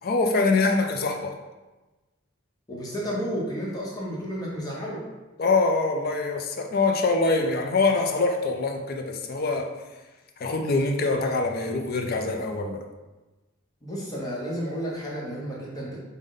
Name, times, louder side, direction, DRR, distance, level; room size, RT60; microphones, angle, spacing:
voice 1, 0.0-1.4 5.4-9.7 10.4-12.8, left 3 dB, 45° left, 4 dB, 0.4 m, -24 dB
voice 2, 2.7-5.0 13.8-16.0, equal, 20° left, -5 dB, 0.8 m, -32 dB
5.0 x 2.1 x 3.7 m, 1.1 s
head